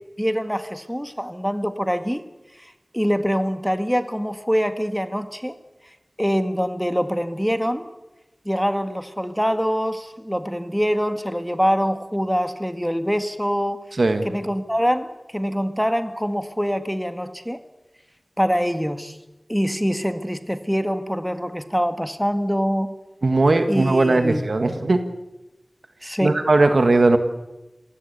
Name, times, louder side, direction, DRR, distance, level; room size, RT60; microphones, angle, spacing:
voice 1, 0.2-2.2 2.6-5.6 6.2-7.9 8.5-13.8 14.2-17.6 18.4-19.2 19.5-22.9 23.7-24.4 26.0-26.4, equal, ahead, 8 dB, 1.8 m, -24 dB
voice 2, 23.2-25.0 26.2-27.2, right 2 dB, 90° right, 7 dB, 1.8 m, -18 dB
28.0 x 17.0 x 8.4 m, 1.0 s
wide cardioid pair, 40°, 0 cm